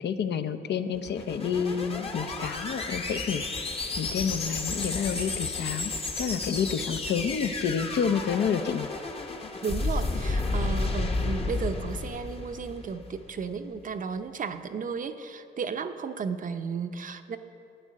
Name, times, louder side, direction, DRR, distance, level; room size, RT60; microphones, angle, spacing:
voice 1, 0.0-3.4 4.0-8.9, left 7 dB, 60° left, 9 dB, 0.7 m, -29 dB
sound 1, 0.9-13.3, left 3 dB, 30° left, 1.0 m, -32 dB
voice 2, 9.6-17.4, right 5 dB, 40° right, 8 dB, 0.7 m, -34 dB
12.5 x 9.2 x 6.4 m, 2.7 s
cardioid pair, 90°, 20 cm